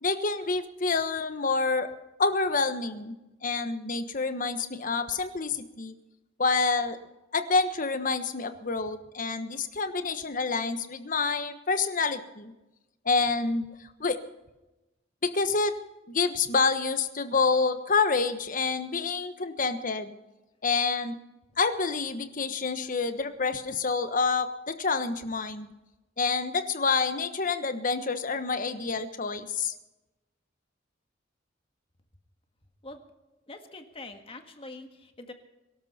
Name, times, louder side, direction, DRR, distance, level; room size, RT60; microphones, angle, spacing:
voice 1, 0.0-1.9 2.2-3.1 3.4-5.9 6.4-7.0 7.3-12.5 13.0-13.7 14.0-14.2 15.2-15.7 16.1-20.1 20.6-21.2 21.6-25.7 26.2-29.7, left 4 dB, 45° left, 9 dB, 1.3 m, -27 dB
voice 2, 33.5-35.3, left 2 dB, 30° left, 6 dB, 1.7 m, -44 dB
23.0 x 12.5 x 4.4 m, 1.0 s
head